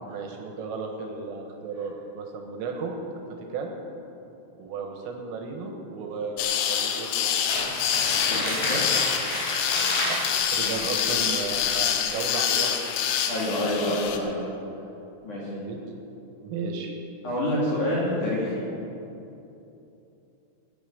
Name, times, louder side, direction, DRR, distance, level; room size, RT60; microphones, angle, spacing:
voice 1, 0.0-3.2 3.5-3.7 4.6-7.3 9.7-12.8 13.3-13.6 15.4-15.8 16.4-16.9, right 4 dB, 90° right, 2 dB, 4.2 m, -34 dB
sound 1, 6.4-14.2, left 9 dB, 90° left, 3.7 m, -26 dB
Crumpling crinkling, 7.5-12.0, left 1 dB, 70° left, 7.2 m, -30 dB
voice 2, 8.3-8.8 10.6-10.9 13.3-14.4 15.2-15.4 17.2-18.6, left 1 dB, 40° left, -7 dB, 4.2 m, -27 dB
18.5 x 9.4 x 7.0 m, 2.9 s
omnidirectional pair, 5.7 m